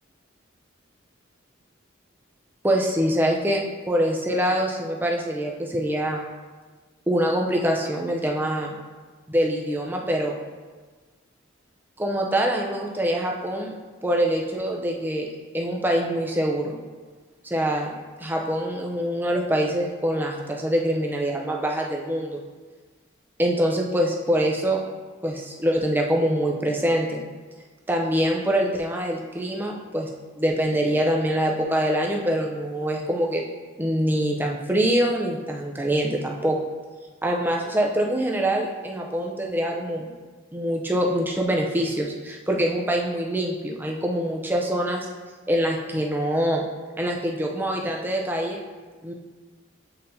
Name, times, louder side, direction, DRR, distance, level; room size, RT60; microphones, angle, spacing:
voice 1, 2.6-6.2 7.1-8.8 9.3-10.4 12.0-13.8 14.0-15.3 15.5-16.8 17.4-17.9 18.2-22.4 23.4-24.8 25.2-27.2 27.9-30.1 30.4-33.4 33.8-36.6 37.2-40.1 40.5-45.1 45.5-46.6 47.0-48.6 49.0-49.1, equal, 10° right, 0 dB, 0.5 m, -24 dB
8.4 x 4.1 x 2.7 m, 1.4 s
head